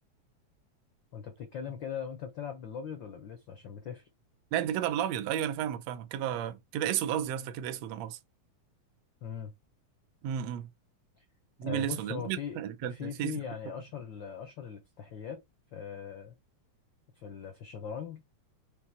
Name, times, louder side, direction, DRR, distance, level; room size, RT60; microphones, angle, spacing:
voice 1, 1.1-4.1 9.2-9.5 11.2-11.3 11.6-15.4 15.7-16.3 17.1-18.4, left 7 dB, 75° left, 1.1 m, -40 dB
voice 2, 4.5-8.2 10.2-10.7 11.6-13.4, right 10 dB, 75° right, 1.8 m, -32 dB
5.9 x 3.4 x 4.7 m
omnidirectional pair, 3.3 m